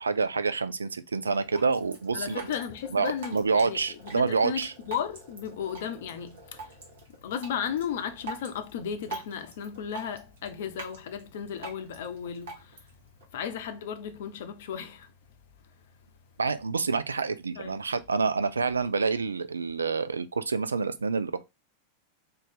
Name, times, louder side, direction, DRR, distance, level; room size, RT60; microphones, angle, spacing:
voice 1, 0.0-2.5 2.9-4.7 16.4-21.4, right 4 dB, 75° right, 0.4 m, -27 dB
Drip, 1.2-13.2, right 3 dB, 55° right, 1.3 m, -45 dB
voice 2, 2.1-6.8 7.2-12.9 13.3-15.1 17.5-17.9, left 8 dB, 55° left, 0.6 m, -35 dB
3.8 x 2.7 x 3.7 m
figure-of-eight pair, 90°, 0 cm